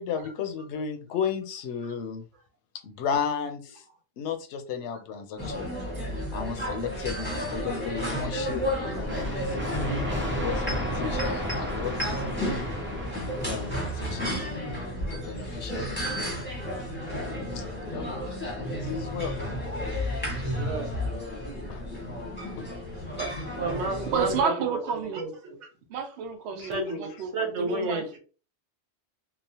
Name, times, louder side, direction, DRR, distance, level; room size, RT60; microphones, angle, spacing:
voice 1, 0.0-2.2 2.8-3.8 4.2-5.8 6.3-9.5 10.1-12.2 12.9-13.0 13.5-16.4 17.5-17.6 17.9-18.3 18.6-19.3 21.7-21.8 22.6-22.7 26.6-26.8, left 7 dB, 75° left, 0.8 m, -34 dB
sound 1, 5.4-24.4, equal, 10° left, 0.8 m, -32 dB
sound 2, 9.0-14.6, equal, 15° right, 0.4 m, -33 dB
voice 2, 20.4-20.9 23.2-24.5 25.0-25.6 26.6-28.2, right 2 dB, 85° right, 1.2 m, -32 dB
voice 3, 24.1-25.2 25.9-28.1, right 6 dB, 70° right, 0.8 m, -30 dB
3.0 x 2.0 x 2.7 m
omnidirectional pair, 1.2 m